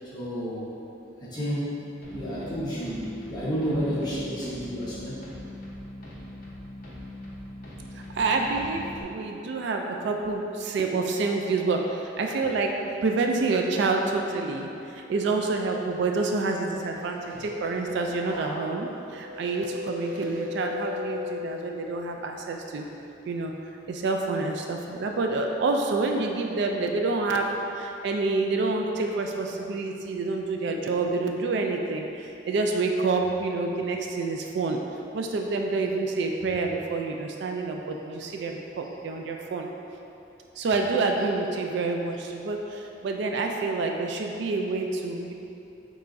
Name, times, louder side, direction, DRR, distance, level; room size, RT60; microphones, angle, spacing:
voice 1, 0.1-0.7 1.2-5.2, equal, 25° left, -10 dB, 1.2 m, -31 dB
sound 1, 2.0-9.0, left 1 dB, 50° left, 0.8 m, -41 dB
voice 2, 8.1-12.7 13.0-22.8 23.2-23.5 23.9-34.8 35.1-39.7 40.6-45.3, right 3 dB, 65° right, 2 dB, 0.3 m, -28 dB
sound 2, 16.9-22.0 22.4-22.8, left 4 dB, 25° right, 1.3 m, -37 dB
6.7 x 3.0 x 2.6 m, 2.8 s
head